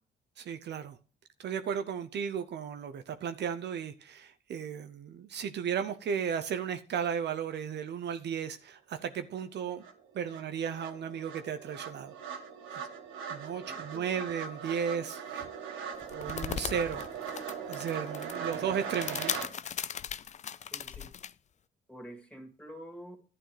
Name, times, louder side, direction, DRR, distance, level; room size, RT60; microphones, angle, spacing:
voice 1, 0.4-1.0 1.4-9.8 10.1-12.2 13.3-17.1 17.7-19.3, right 7 dB, 60° right, 0.7 m, -35 dB
sound 1, 9.4-9.5 9.8-19.5, right 7 dB, 90° right, 1.4 m, -40 dB
voice 2, 13.6-14.2 20.7-21.1 21.9-23.2, equal, 5° left, 2.5 m, -48 dB
sound 2, 15.9-21.3, left 8 dB, 35° left, 0.4 m, -38 dB
11.5 x 8.7 x 3.3 m
cardioid pair, 90°, 20 cm